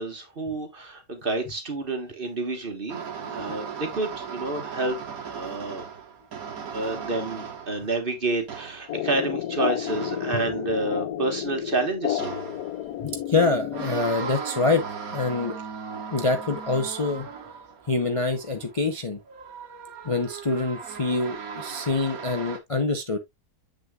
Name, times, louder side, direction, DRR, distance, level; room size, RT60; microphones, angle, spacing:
voice 1, 0.0-3.0 3.3-5.8 6.7-12.3, right 2 dB, 35° right, 1.7 m, -29 dB
sound 1, 2.9-8.1 8.5-9.0 9.9-10.6 12.2-12.9 13.7-18.9 19.3-22.6, right 6 dB, 70° right, 1.8 m, -37 dB
voice 2, 3.2-3.6 10.3-10.5 13.0-14.8 15.1-15.6 16.1-17.3 17.9-19.2 20.0-23.2, left 3 dB, 30° left, 0.7 m, -25 dB
sound 2, 8.9-14.4, left 11 dB, 90° left, 1.2 m, -31 dB
7.8 x 6.3 x 2.4 m
omnidirectional pair, 1.6 m